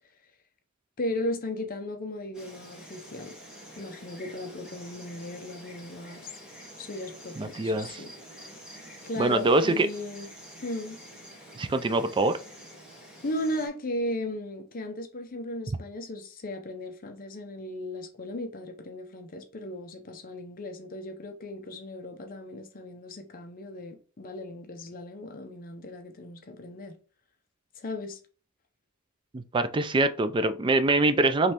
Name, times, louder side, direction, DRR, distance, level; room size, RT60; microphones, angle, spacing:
voice 1, 1.0-3.3 3.8-6.3 6.8-8.1 9.0-10.3 10.6-11.0 13.2-26.9 27.8-28.2, left 1 dB, 40° left, 0.6 m, -36 dB
Insect, 2.3-13.7, equal, 5° right, 1.4 m, -48 dB
voice 2, 7.4-8.0 9.2-9.9 11.6-12.4 29.3-31.5, right 2 dB, 25° right, 0.3 m, -24 dB
5.1 x 3.1 x 2.9 m
head